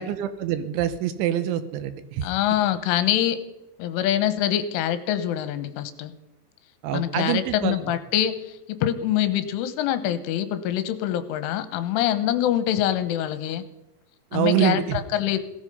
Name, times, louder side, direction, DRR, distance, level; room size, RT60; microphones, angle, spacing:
voice 1, 0.0-2.3 6.8-7.8 14.3-15.0, right 11 dB, 80° right, 11 dB, 3.2 m, -25 dB
voice 2, 2.2-3.4 3.8-6.1 6.9-13.6 14.3-15.4, left 11 dB, 80° left, 11 dB, 3.5 m, -25 dB
17.0 x 14.0 x 5.5 m, 0.94 s
omnidirectional pair, 5.7 m